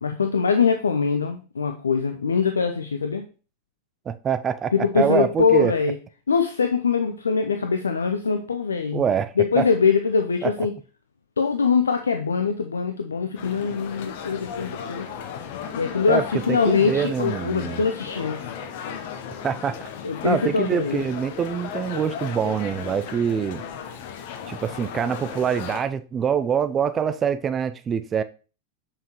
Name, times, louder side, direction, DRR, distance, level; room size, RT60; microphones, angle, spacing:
voice 1, 0.0-3.3 4.7-6.0 6.3-9.0 9.4-10.7 11.4-15.1 15.8-18.5 20.0-21.1, left 5 dB, 70° left, 0.4 m, -23 dB
voice 2, 4.1-5.7 8.9-9.7 10.4-10.5 16.1-16.2 16.5-17.8 19.4-19.8 20.2-23.6 24.4-28.2, right 7 dB, 25° right, 0.4 m, -25 dB
sound 1, 13.4-25.8, left 7 dB, 50° left, 0.9 m, -36 dB
6.8 x 5.8 x 3.0 m
figure-of-eight pair, 90°, 0 cm